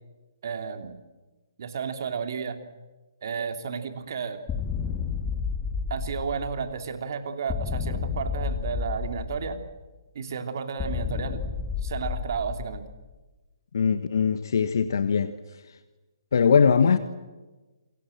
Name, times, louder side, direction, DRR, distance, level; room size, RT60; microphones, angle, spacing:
voice 1, 0.4-0.9 1.6-2.6 3.2-4.4 5.9-9.6 10.1-11.4 11.8-12.8, right 6 dB, 55° right, 7 dB, 3.0 m, -32 dB
sound 1, 4.5-6.8 7.5-9.8 10.8-13.1, left 6 dB, 15° left, 2.3 m, -31 dB
voice 2, 13.7-15.3 16.3-17.0, left 6 dB, 60° left, 11 dB, 1.3 m, -21 dB
28.0 x 23.5 x 7.7 m, 1.2 s
figure-of-eight pair, 130°, 2 cm